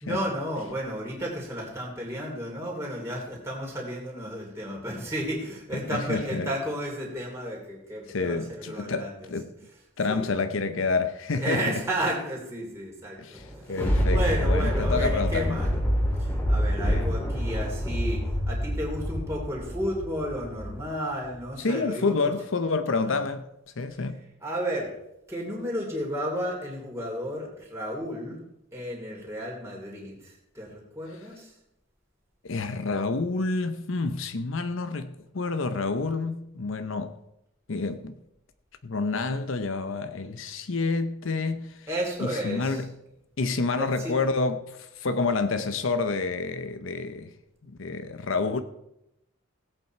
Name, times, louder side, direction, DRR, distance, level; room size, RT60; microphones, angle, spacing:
voice 1, 0.0-9.3 10.1-10.3 11.4-13.4 14.1-15.7 16.2-22.3 23.1-23.2 24.4-24.9 25.3-28.4 28.7-31.5 41.9-42.8 43.8-44.1, equal, 15° right, 2.8 m, -32 dB
voice 2, 5.9-6.5 8.1-9.5 10.0-11.8 13.2-15.6 16.8-17.2 21.6-23.4 23.8-24.2 32.4-37.2 37.7-38.1 38.8-41.9 42.2-42.9 43.4-47.3 47.7-48.6, left 3 dB, 70° left, 0.7 m, -28 dB
Thunder, 13.4-20.9 21.4-21.5, equal, 10° left, 2.1 m, -26 dB
16.5 x 8.3 x 4.4 m
head